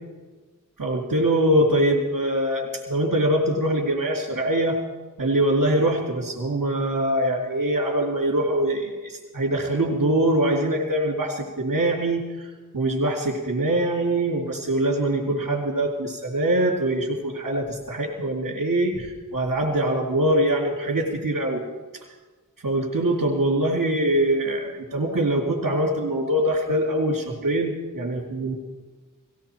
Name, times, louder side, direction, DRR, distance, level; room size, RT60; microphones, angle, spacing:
voice 1, 0.8-4.8 5.2-12.5 12.7-21.6 22.6-28.5, right 1 dB, 80° right, -6 dB, 2.8 m, -23 dB
18.5 x 16.5 x 4.5 m, 1.3 s
wide cardioid pair, 55°, 33 cm